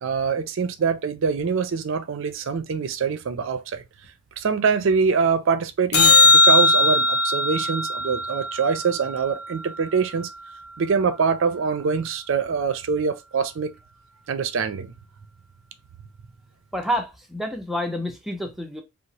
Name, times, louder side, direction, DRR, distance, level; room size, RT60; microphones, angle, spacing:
voice 1, 0.0-3.8 4.4-10.3 10.8-13.7 14.3-14.9, right 5 dB, 60° right, 0.4 m, -24 dB
sound 1, 5.9-10.4 17.0-17.1, left 2 dB, 80° left, 0.6 m, -20 dB
voice 2, 16.7-18.8, equal, ahead, 0.4 m, -28 dB
2.9 x 2.0 x 2.7 m
head